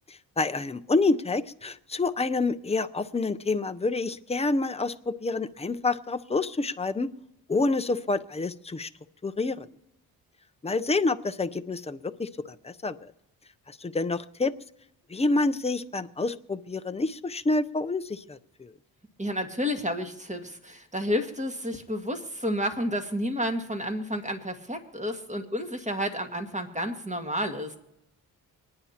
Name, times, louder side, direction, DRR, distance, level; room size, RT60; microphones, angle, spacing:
voice 1, 0.1-7.1 7.5-8.9 9.2-9.7 10.6-13.1 13.7-14.5 15.1-18.7, left 3 dB, 15° left, 10 dB, 0.7 m, -28 dB
voice 2, 19.2-27.8, equal, 15° right, 5 dB, 2.0 m, -31 dB
26.0 x 9.7 x 2.9 m, 0.87 s
supercardioid pair, 45°, 46 cm